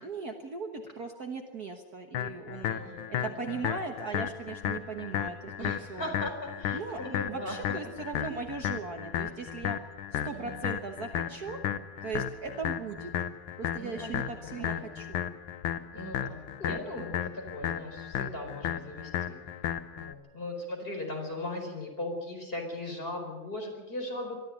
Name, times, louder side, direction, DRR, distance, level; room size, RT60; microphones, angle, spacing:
voice 1, 0.0-2.8 3.1-6.3 6.7-7.0 7.3-9.8 10.1-11.6 12.0-13.1 13.6-15.3, right 4 dB, 50° right, 4 dB, 1.7 m, -38 dB
sound 1, 2.1-20.1, left 10 dB, 85° left, 1.8 m, -34 dB
voice 2, 2.7-3.6 5.6-7.6 10.3-10.6 13.8-14.9 15.9-19.4 20.0-24.4, left 1 dB, 25° left, 1 dB, 4.9 m, -38 dB
23.0 x 13.0 x 9.0 m, 1.1 s
omnidirectional pair, 2.3 m